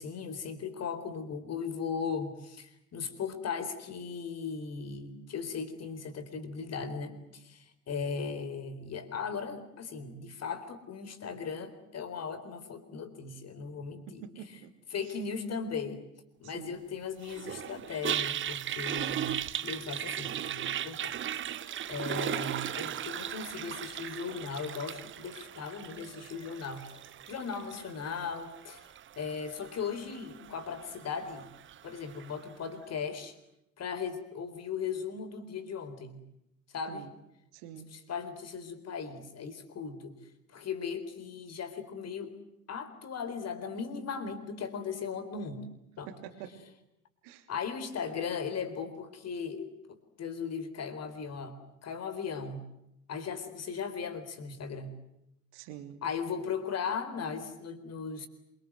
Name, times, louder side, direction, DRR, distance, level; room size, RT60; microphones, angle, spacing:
voice 1, 0.0-14.6 14.9-16.0 16.4-21.5 21.9-26.9 27.3-28.9 29.2-31.5 31.8-33.3 33.8-36.2 36.7-37.1 37.9-40.2 40.5-42.4 42.7-45.7 46.0-46.1 47.5-51.6 51.8-52.6 53.1-55.0 56.0-58.3, left 6 dB, 35° left, 9 dB, 4.2 m, -37 dB
voice 2, 14.1-14.7 16.4-16.8 36.9-37.1 37.5-37.9 46.1-46.5 47.2-47.5 55.5-56.0, right 9 dB, 55° right, 6 dB, 3.1 m, -46 dB
Toilet flush, 17.2-32.4, right 10 dB, 25° right, 0.9 m, -38 dB
27.0 x 25.0 x 7.9 m, 0.84 s
figure-of-eight pair, 65°, 45 cm